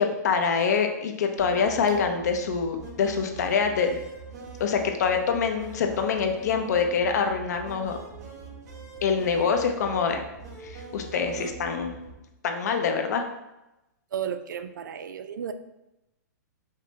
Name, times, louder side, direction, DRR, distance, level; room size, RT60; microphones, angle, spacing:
voice 1, 0.0-4.0 4.6-8.0 9.0-10.2 10.6-11.9 12.4-13.2, left 6 dB, 60° left, 5 dB, 0.6 m, -25 dB
sound 1, 1.4-12.1, right 4 dB, 60° right, 1.4 m, -43 dB
voice 2, 14.1-15.5, right 8 dB, 85° right, 10 dB, 0.4 m, -33 dB
5.2 x 2.1 x 4.0 m, 0.93 s
hypercardioid pair, 160°, 10 cm